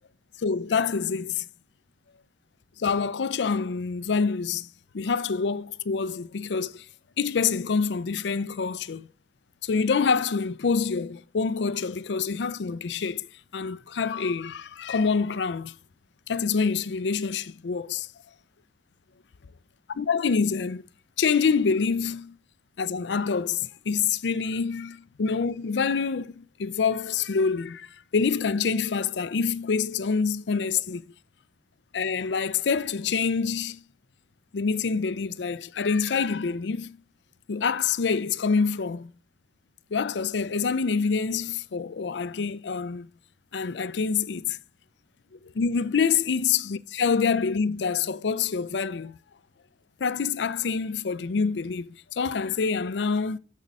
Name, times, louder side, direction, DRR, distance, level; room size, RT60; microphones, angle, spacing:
voice 1, 0.4-1.5 2.8-4.7 4.9-6.9 7.2-9.1 9.6-13.3 13.5-15.7 16.3-18.1 19.9-20.8 21.2-22.4 22.8-31.0 31.9-33.8 34.5-37.0 37.5-39.2 39.9-43.1 43.5-44.6 45.5-49.2 50.0-53.4, left 5 dB, 75° left, 0.5 m, -26 dB
7.3 x 6.4 x 5.3 m
head